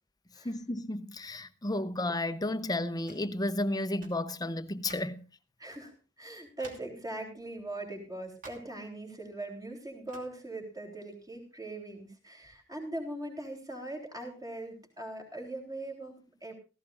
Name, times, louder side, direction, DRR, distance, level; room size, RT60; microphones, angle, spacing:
voice 1, 0.4-5.2, left 1 dB, 20° left, 0.8 m, -32 dB
sound 1, 3.1-3.3 4.0-4.3 4.8-5.2 5.8-5.9 6.6-7.0 8.4-8.8 10.1-10.4, right 2 dB, 45° right, 2.9 m, -51 dB
voice 2, 5.6-16.5, right 1 dB, 20° right, 3.6 m, -41 dB
16.5 x 15.5 x 2.5 m
head